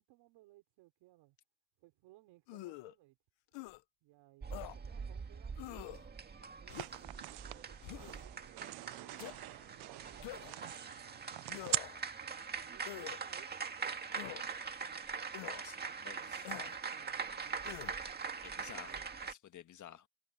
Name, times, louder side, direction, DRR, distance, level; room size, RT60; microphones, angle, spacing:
voice 1, 0.0-1.4 1.8-3.2 4.0-11.0 12.2-15.1 15.8-19.1, right 18 dB, 90° right, 5.7 m, -63 dB
sound 1, 2.5-2.9 3.5-3.8 4.5-4.8 5.6-6.0 6.7-7.1 7.8-8.2 9.2-9.4 10.2-10.6 11.5-12.0 12.8-13.2 14.2-14.4 15.3-15.6 16.5-16.8 17.6-18.0, left 19 dB, 80° left, 0.8 m, -46 dB
sound 2, 4.4-19.3, right 5 dB, 20° right, 1.9 m, -43 dB
sound 3, 6.7-11.8, right 18 dB, 65° right, 0.7 m, -43 dB
voice 2, 15.4-16.4 18.4-20.1, left 11 dB, 45° left, 1.5 m, -53 dB
cardioid pair, 160°, 43 cm